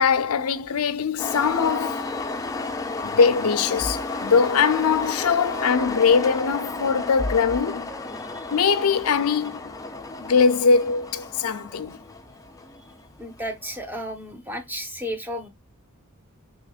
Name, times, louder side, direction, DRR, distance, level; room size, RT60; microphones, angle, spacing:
voice 1, 0.0-2.2 3.0-7.9 8.5-9.7 10.2-12.0, left 5 dB, 75° left, 0.5 m, -21 dB
sound 1, 1.2-13.9, left 3 dB, 15° left, 0.6 m, -32 dB
voice 2, 8.1-8.6 13.2-15.5, equal, 10° right, 0.9 m, -33 dB
6.2 x 3.0 x 2.3 m
head